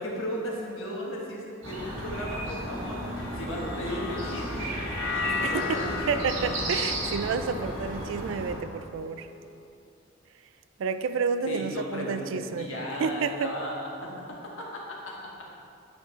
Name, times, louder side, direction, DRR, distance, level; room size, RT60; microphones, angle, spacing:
voice 1, 0.0-4.8 5.1-6.4 11.4-15.4, equal, 85° left, -3 dB, 1.3 m, -36 dB
sound 1, 1.6-8.5, right 1 dB, 85° right, 1.6 m, -34 dB
sound 2, 3.2-9.5, left 5 dB, 65° left, 0.6 m, -36 dB
voice 2, 6.1-9.3 10.8-12.7 13.0-13.5, right 5 dB, 70° right, 10 dB, 0.3 m, -30 dB
8.9 x 5.4 x 3.1 m, 2.6 s
head